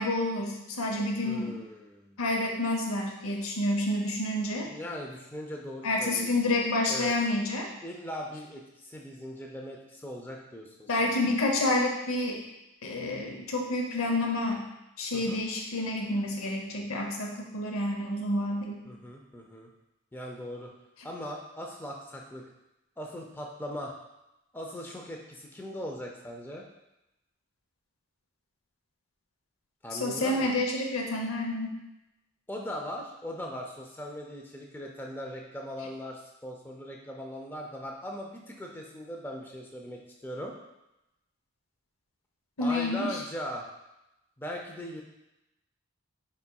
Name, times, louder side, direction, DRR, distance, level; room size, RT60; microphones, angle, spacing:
voice 1, 0.0-1.5 2.2-4.7 5.8-7.7 10.9-12.4 12.8-14.6 15.0-18.8 30.0-31.8 42.6-43.1, left 2 dB, 75° left, 1 dB, 0.7 m, -29 dB
voice 2, 1.2-2.2 4.6-6.6 6.9-7.1 7.8-11.1 15.1-15.4 18.9-19.7 20.1-20.7 21.0-22.4 23.0-23.9 24.5-26.7 29.8-30.6 32.5-40.6 42.6-43.7 44.4-45.0, equal, 10° left, 0 dB, 0.4 m, -39 dB
4.4 x 4.1 x 2.3 m, 0.92 s
head